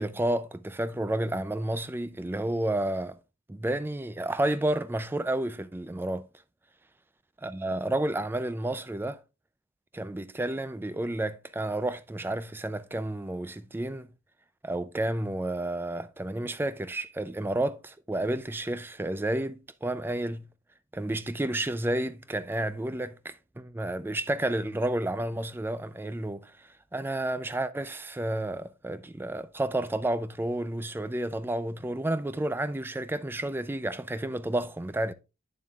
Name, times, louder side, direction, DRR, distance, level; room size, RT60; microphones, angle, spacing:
voice 1, 0.0-3.2 3.5-6.3 7.4-9.2 9.9-14.1 14.6-20.4 20.9-35.1, right 1 dB, 10° right, 0.3 m, -31 dB
8.7 x 7.3 x 2.3 m
head